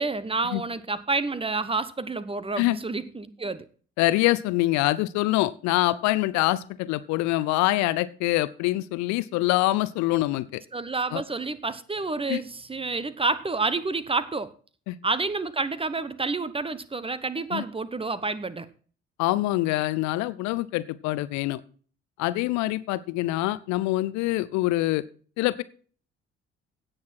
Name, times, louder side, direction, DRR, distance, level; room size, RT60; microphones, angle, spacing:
voice 1, 0.0-3.7 10.7-14.5 15.0-18.7, right 3 dB, 15° right, 0.9 m, -29 dB
voice 2, 4.0-10.6 11.1-11.2 12.3-12.4 14.9-15.0 17.5-17.6 19.2-21.6 22.2-25.0 25.4-25.6, left 18 dB, 55° left, 0.6 m, -25 dB
16.5 x 6.3 x 4.5 m
figure-of-eight pair, 45°, 33 cm